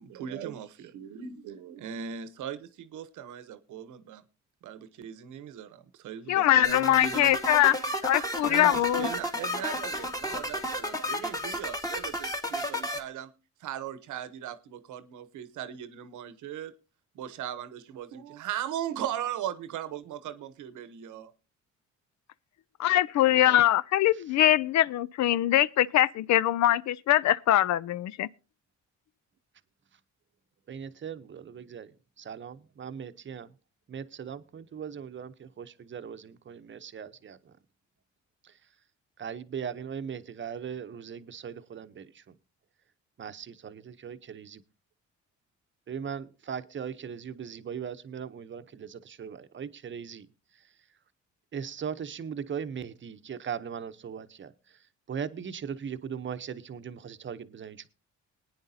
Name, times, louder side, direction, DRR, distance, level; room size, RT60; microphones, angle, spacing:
voice 1, 0.0-4.2 4.6-13.3 13.6-16.7 17.2-21.3, right 10 dB, 80° right, 1.0 m, -38 dB
voice 2, 6.3-7.7 8.0-9.1 22.8-28.3, left 13 dB, 65° left, 0.5 m, -23 dB
sound 1, 6.6-13.0, equal, 10° left, 1.5 m, -32 dB
voice 3, 23.3-23.6 30.7-33.5 33.9-37.5 38.4-38.6 39.2-42.4 43.2-44.6 45.9-50.3 51.5-54.8 55.1-57.9, right 7 dB, 40° right, 0.8 m, -39 dB
20.0 x 9.5 x 2.7 m
cardioid pair, 90°, 30 cm